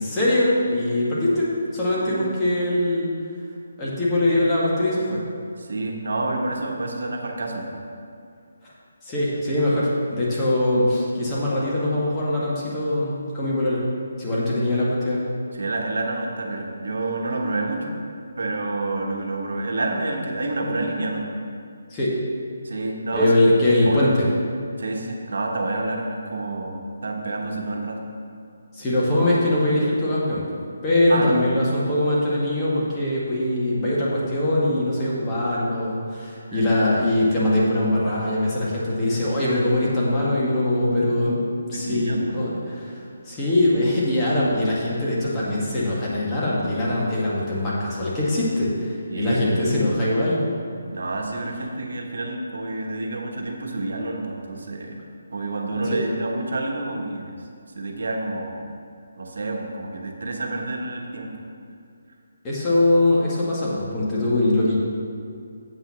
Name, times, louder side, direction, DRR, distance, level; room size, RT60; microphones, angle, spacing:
voice 1, 0.0-1.5 1.7-3.1 3.8-5.2 9.1-13.8 14.2-15.2 21.9-22.2 23.1-24.3 28.7-41.4 41.7-50.4 55.9-56.0 62.4-64.8, left 1 dB, 15° left, -7 dB, 1.9 m, -22 dB
voice 2, 5.6-7.8 15.5-18.0 18.4-21.3 22.6-23.3 23.8-24.1 24.8-28.0 31.1-31.5 36.5-36.6 41.7-42.5 49.1-49.4 50.9-55.0 55.3-57.4 57.8-58.7 59.2-61.3, right 2 dB, 75° right, 1 dB, 1.2 m, -28 dB
7.8 x 5.7 x 6.1 m, 2.4 s
figure-of-eight pair, 155°, 0 cm